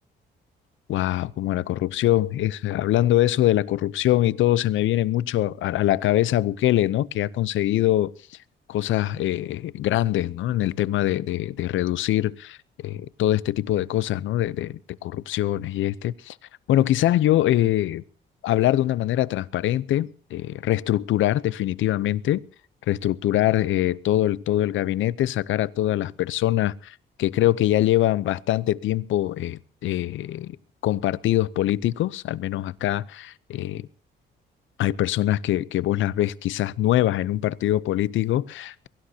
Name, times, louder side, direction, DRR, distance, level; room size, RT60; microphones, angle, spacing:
voice 1, 0.9-8.1 8.7-16.4 16.7-18.0 18.4-22.4 22.9-30.6 30.8-33.9 34.8-38.9, left 14 dB, 75° left, 0.7 m, -23 dB
23.0 x 16.5 x 2.9 m
cardioid pair, 90°, 20 cm